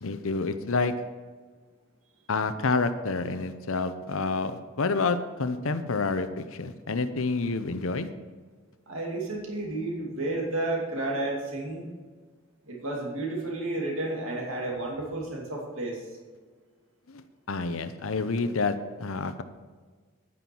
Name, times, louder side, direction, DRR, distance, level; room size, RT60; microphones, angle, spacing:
voice 1, 0.0-0.9 2.3-8.1 17.1-19.4, left 3 dB, 75° left, 10 dB, 0.7 m, -28 dB
voice 2, 8.9-11.9 12.7-16.0, right 2 dB, 75° right, -1 dB, 2.5 m, -31 dB
10.0 x 9.3 x 4.5 m, 1.5 s
head